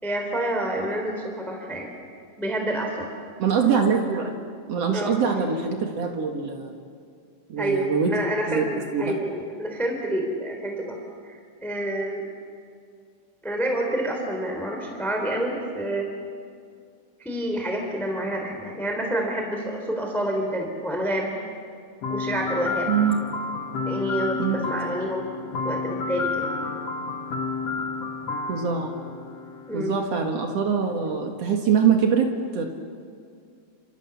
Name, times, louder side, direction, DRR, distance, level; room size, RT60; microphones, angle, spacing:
voice 1, 0.0-1.9 2.4-3.1 4.9-5.2 7.6-12.3 13.4-16.1 17.2-21.3 22.1-22.9 23.8-25.2 25.6-26.5 29.7-29.9, right 1 dB, ahead, 2 dB, 2.7 m, -28 dB
voice 2, 3.4-4.3 4.7-6.8 7.5-8.2 8.5-8.6 8.9-9.1 22.9-23.2 24.4-24.7 28.5-28.9 29.7-32.6, right 6 dB, 85° right, 3 dB, 1.4 m, -23 dB
sound 1, 22.0-29.9, left 4 dB, 60° left, 1.7 m, -30 dB
30.0 x 27.5 x 7.2 m, 2.3 s
omnidirectional pair, 5.7 m